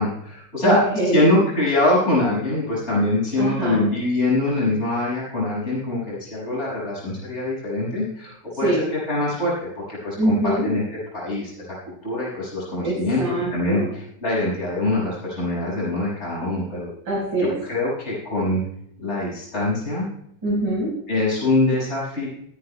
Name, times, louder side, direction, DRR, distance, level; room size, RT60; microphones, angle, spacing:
voice 1, 0.0-0.8 1.1-10.8 11.1-11.7 12.0-13.2 13.5-16.9 17.4-18.6 19.0-20.1 21.1-22.3, left 2 dB, 35° left, -7 dB, 6.4 m, -23 dB
voice 2, 0.6-1.2 3.4-3.8 8.6-8.8 10.2-10.7 12.8-13.9 17.1-17.5 20.4-20.9, right 1 dB, 80° right, -7 dB, 5.5 m, -23 dB
26.5 x 9.8 x 2.2 m, 0.72 s
omnidirectional pair, 2.0 m